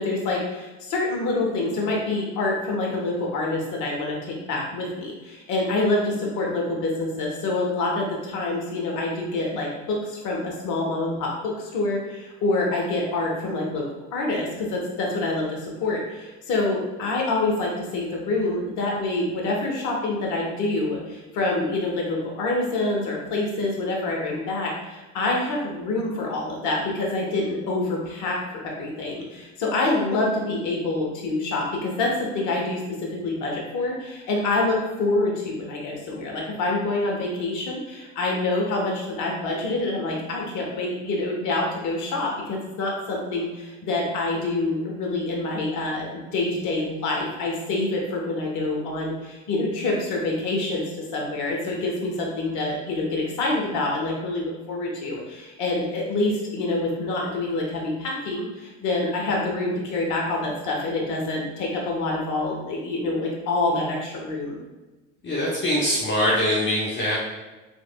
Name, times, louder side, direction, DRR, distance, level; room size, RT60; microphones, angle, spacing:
voice 1, 0.0-13.8 14.1-32.8 33.2-64.6, left 2 dB, 55° left, -1 dB, 1.0 m, -26 dB
voice 2, 65.2-67.1, left 1 dB, 35° left, -5 dB, 0.8 m, -23 dB
3.5 x 3.0 x 2.2 m, 1.2 s
hypercardioid pair, 70°, 36 cm